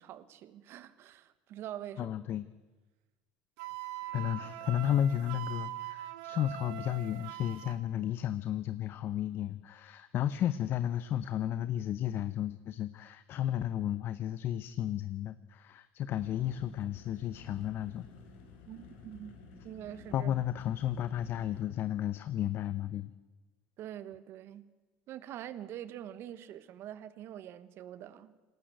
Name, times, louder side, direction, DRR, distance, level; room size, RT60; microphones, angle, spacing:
voice 1, 0.0-2.1 18.7-19.4 19.6-20.3 23.8-24.6 25.1-28.3, right 11 dB, 55° right, 14 dB, 1.4 m, -45 dB
voice 2, 2.0-2.5 4.1-18.1 20.1-23.1, left 11 dB, 50° left, 13 dB, 0.8 m, -33 dB
Wind instrument woodwind instrument, 3.6-7.8, right 15 dB, 75° right, 1.2 m, -42 dB
sound 1, 16.1-21.7, left 5 dB, 80° left, 4.2 m, -53 dB
21.0 x 18.0 x 8.1 m, 1.2 s
supercardioid pair, 90°, 5 cm